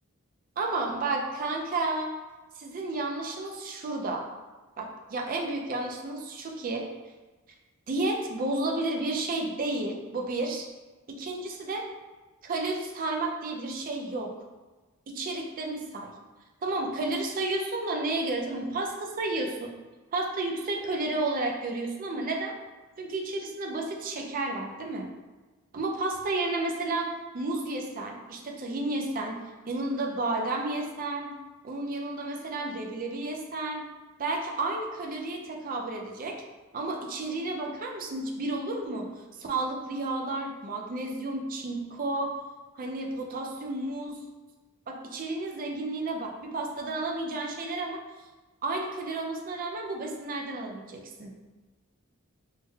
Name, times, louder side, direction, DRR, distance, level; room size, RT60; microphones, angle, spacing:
voice 1, 0.6-2.1 2.6-4.2 4.8-6.8 7.9-10.7 11.1-11.8 12.4-14.3 15.1-16.1 16.6-19.7 20.1-22.5 23.0-25.1 25.7-27.1 27.3-29.4 29.7-31.3 31.6-33.9 34.2-36.3 36.7-39.1 39.4-42.3 42.8-44.2 44.9-48.0 48.6-51.3, right 2 dB, 40° right, 1 dB, 0.4 m, -31 dB
3.2 x 2.1 x 3.3 m, 1.2 s
head